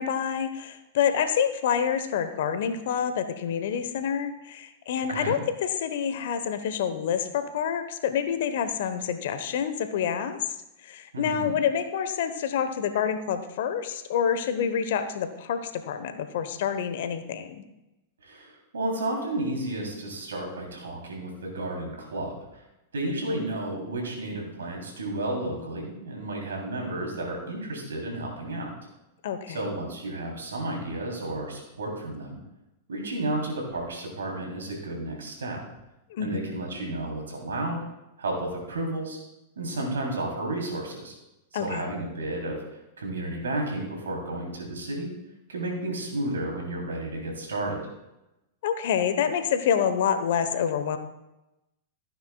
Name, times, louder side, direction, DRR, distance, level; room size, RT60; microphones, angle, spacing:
voice 1, 0.0-10.4 10.8-17.6 23.1-23.2 29.2-29.7 36.1-36.5 41.5-41.9 48.6-51.0, left 8 dB, 60° left, 10 dB, 1.0 m, -27 dB
voice 2, 11.1-11.6 18.2-22.6 22.9-28.7 29.5-32.4 32.9-35.6 36.2-37.8 38.2-39.2 39.6-41.1 41.5-42.6 43.0-45.1 45.5-47.8, right 1 dB, 80° right, 0 dB, 3.2 m, -32 dB
15.5 x 9.3 x 2.3 m, 0.94 s
figure-of-eight pair, 100°, 0 cm